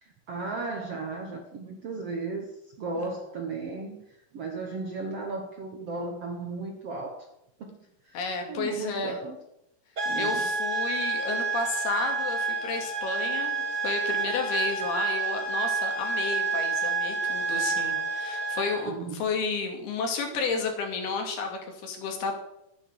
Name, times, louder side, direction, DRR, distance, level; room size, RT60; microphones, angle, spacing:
voice 1, 0.0-2.5 2.8-7.3 7.6-7.8 8.0-8.2 8.5-9.4 10.0-10.5 18.8-19.2, right 3 dB, 60° right, 3 dB, 1.6 m, -35 dB
voice 2, 8.1-9.2 10.2-22.4, left 4 dB, 80° left, 3 dB, 4.4 m, -32 dB
sound 1, 10.0-18.9, right 4 dB, 30° right, 1.4 m, -29 dB
13.0 x 9.2 x 7.7 m, 0.82 s
omnidirectional pair, 4.5 m